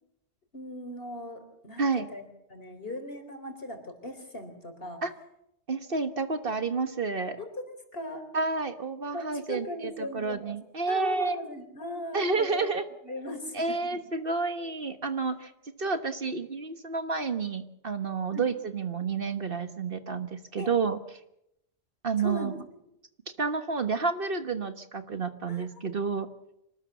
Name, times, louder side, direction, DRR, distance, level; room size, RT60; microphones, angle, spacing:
voice 1, 0.5-1.8 2.1-2.2 2.5-5.0 7.4-8.3 9.1-10.6 10.9-12.7 13.0-14.0 18.3-18.5 20.6-20.7 22.2-22.5 25.5-25.8, left 1 dB, 55° left, 6 dB, 4.3 m, -38 dB
voice 2, 5.7-7.4 8.3-9.7 10.0-11.4 12.1-12.8 13.5-15.5 15.8-21.0 22.0-22.6 23.4-26.3, right 4 dB, 55° right, 9 dB, 1.5 m, -30 dB
25.5 x 19.0 x 7.1 m, 0.82 s
omnidirectional pair, 1.2 m